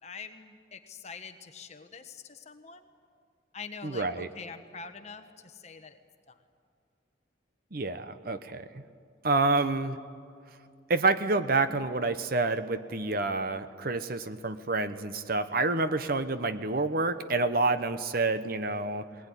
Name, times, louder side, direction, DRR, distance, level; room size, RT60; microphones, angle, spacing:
voice 1, 0.0-2.9 3.5-6.0 6.3-6.4, left 5 dB, 35° left, 7 dB, 1.3 m, -45 dB
voice 2, 3.8-4.3 7.7-8.8 9.2-10.0 10.9-19.1, right 3 dB, 50° right, 11 dB, 0.9 m, -28 dB
21.0 x 19.5 x 9.9 m, 2.3 s
head